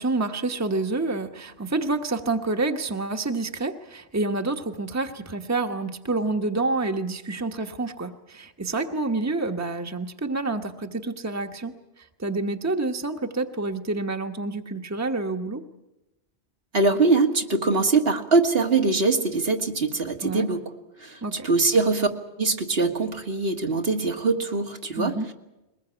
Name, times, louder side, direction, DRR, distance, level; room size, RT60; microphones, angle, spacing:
voice 1, 0.0-11.7 12.2-15.6 20.2-20.5 21.2-21.5 25.0-25.3, right 3 dB, 15° right, 5 dB, 1.1 m, -28 dB
voice 2, 16.7-20.6 21.0-22.1 22.4-25.3, right 3 dB, 65° right, 3 dB, 2.0 m, -23 dB
22.0 x 20.0 x 8.9 m, 0.97 s
omnidirectional pair, 1.1 m